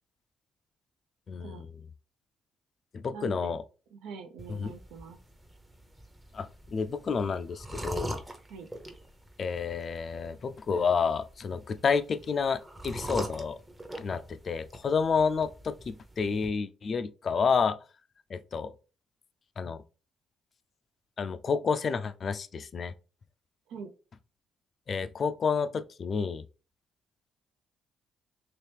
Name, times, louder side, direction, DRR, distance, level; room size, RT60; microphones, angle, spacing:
voice 1, 1.3-1.7 2.9-3.6 4.5-4.7 6.3-8.2 9.4-13.6 14.0-17.8 18.3-18.7 19.6-19.8 21.2-22.9 24.9-26.4, left 5 dB, 50° left, 0.4 m, -30 dB
voice 2, 3.1-3.6 3.9-5.2 8.5-8.7 23.7-23.9, right 5 dB, 90° right, 0.6 m, -43 dB
sound 1, 4.4-16.5, right 1 dB, 20° right, 0.7 m, -44 dB
3.0 x 2.9 x 3.3 m
supercardioid pair, 70°, 0 cm